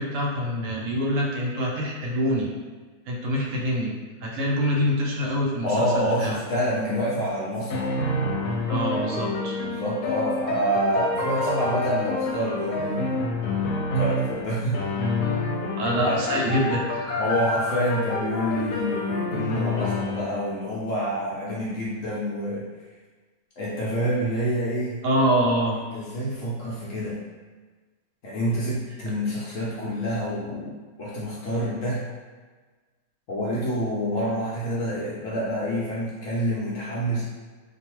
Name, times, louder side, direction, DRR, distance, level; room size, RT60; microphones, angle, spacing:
voice 1, 0.0-2.5 3.1-3.9 4.2-6.4 8.7-9.5 15.8-17.2 25.0-25.8, equal, 65° right, -2 dB, 0.9 m, -25 dB
voice 2, 5.6-8.0 9.6-13.4 13.9-14.8 16.0-16.3 17.2-22.6 23.6-25.0 25.9-27.2 28.2-32.0 33.3-37.2, equal, 65° left, -7 dB, 0.9 m, -27 dB
sound 1, 7.2-14.5 14.7-20.4, left 2 dB, 90° left, 1.1 m, -28 dB
2.4 x 2.2 x 2.9 m, 1.4 s
omnidirectional pair, 1.6 m